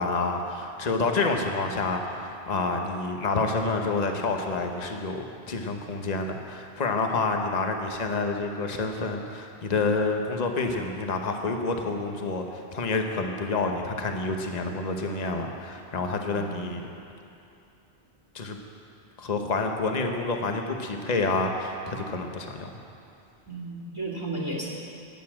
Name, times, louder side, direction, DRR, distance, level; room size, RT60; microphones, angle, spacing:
voice 1, 0.0-16.9 18.3-18.6 19.2-22.7, left 3 dB, 40° left, 3 dB, 1.1 m, -28 dB
voice 2, 23.5-24.7, right 2 dB, 25° right, -2 dB, 2.5 m, -33 dB
12.0 x 8.4 x 8.7 m, 2.6 s
omnidirectional pair, 1.1 m